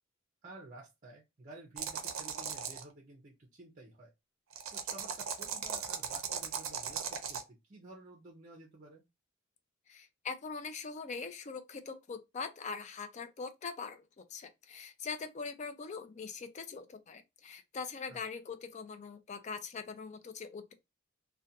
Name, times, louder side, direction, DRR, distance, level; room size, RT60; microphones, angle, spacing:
voice 1, 0.4-4.1 4.7-9.0 18.1-18.2, right 2 dB, 40° right, 0.5 m, -52 dB
sound 1, 1.8-2.8 4.5-7.4, right 7 dB, 85° right, 0.5 m, -38 dB
voice 2, 9.9-20.7, left 5 dB, 35° left, 0.3 m, -42 dB
2.4 x 2.2 x 2.6 m
head